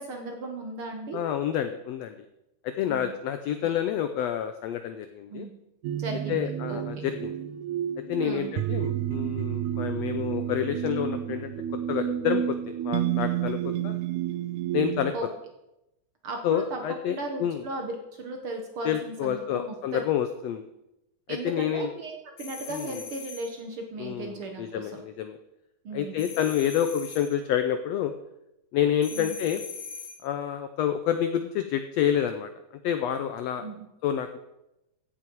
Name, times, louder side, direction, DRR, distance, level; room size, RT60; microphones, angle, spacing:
voice 1, 0.0-1.2 2.9-3.1 5.3-5.5 5.9-6.4 6.7-6.8 8.2-8.5 15.1-15.3 16.2-16.8 17.1-20.0 21.3-22.1 22.4-25.0 25.8-26.3 29.1-29.4 33.6-33.9, right 2 dB, 55° right, 3 dB, 1.6 m, -36 dB
voice 2, 1.1-2.2 2.6-5.5 6.3-7.3 8.1-11.5 11.9-14.0 14.7-15.1 16.4-17.7 18.8-20.6 21.3-21.9 22.7-23.0 24.0-25.4 25.9-28.1 28.7-29.6 30.2-32.5 32.8-33.6 34.0-34.4, left 10 dB, 85° left, 9 dB, 1.5 m, -28 dB
sound 1, 5.8-15.1, right 11 dB, 75° right, 2.0 m, -30 dB
sound 2, 22.4-23.6 26.2-27.4 29.0-30.3, left 6 dB, 60° left, 1.6 m, -41 dB
15.5 x 8.7 x 4.6 m, 0.90 s
omnidirectional pair, 3.7 m